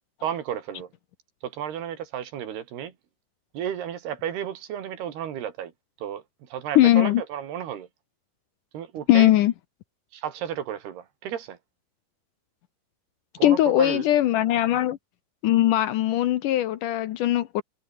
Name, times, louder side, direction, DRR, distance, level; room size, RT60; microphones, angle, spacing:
voice 1, 0.2-0.9 1.4-2.9 3.5-5.7 6.0-6.2 6.5-7.9 8.7-9.3 10.1-11.6 13.4-14.1 14.7-14.8, right 9 dB, 85° right, 4.5 m, -33 dB
voice 2, 6.8-7.2 9.1-9.5 13.4-15.0 15.4-17.6, left 13 dB, 70° left, 2.1 m, -20 dB
omnidirectional pair, 4.5 m